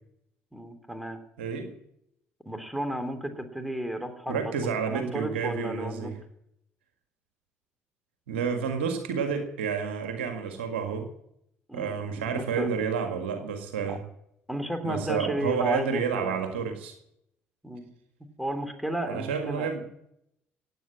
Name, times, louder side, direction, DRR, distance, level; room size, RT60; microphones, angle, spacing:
voice 1, 0.5-1.2 2.4-4.5 4.9-6.1 11.7-12.7 13.9-14.0 14.5-16.4 17.6-17.8 18.4-19.7, equal, ahead, 7 dB, 3.2 m, -33 dB
voice 2, 1.4-1.7 4.3-6.1 8.3-11.1 11.7-14.0 14.8-16.9 19.1-19.8, right 6 dB, 75° right, 6 dB, 1.8 m, -30 dB
17.5 x 9.0 x 7.5 m, 0.77 s
figure-of-eight pair, 50°, 6 cm